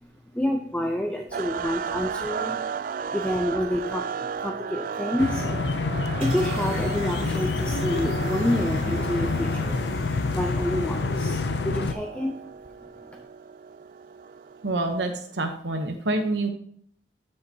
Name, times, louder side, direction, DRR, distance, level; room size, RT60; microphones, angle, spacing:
voice 1, 0.3-2.6 3.1-12.4 13.1-13.2, left 1 dB, 10° left, 3 dB, 0.6 m, -29 dB
sound 1, 1.3-15.4, right 7 dB, 50° right, 0.3 m, -35 dB
sound 2, 5.2-11.9, left 3 dB, 70° left, 0.5 m, -27 dB
sound 3, 6.2-11.3, right 3 dB, 30° right, 3.3 m, -47 dB
voice 2, 14.6-16.5, right 2 dB, 80° right, 4 dB, 0.9 m, -27 dB
12.0 x 6.7 x 2.8 m, 0.63 s
head